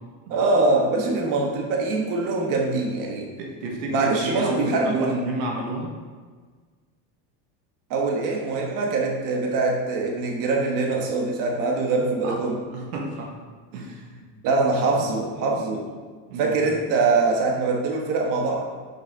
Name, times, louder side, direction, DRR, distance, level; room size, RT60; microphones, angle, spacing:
voice 1, 0.3-3.3 3.9-5.1 7.9-12.6 14.4-15.9 16.4-18.7, right 3 dB, 55° right, 0 dB, 1.4 m, -23 dB
voice 2, 3.4-5.9 12.2-12.4 12.7-13.4 13.7-14.3 14.8-14.9 16.3-16.6, right 1 dB, 85° right, 0 dB, 1.4 m, -30 dB
6.5 x 5.4 x 4.6 m, 1.5 s
cardioid pair, 135°, 38 cm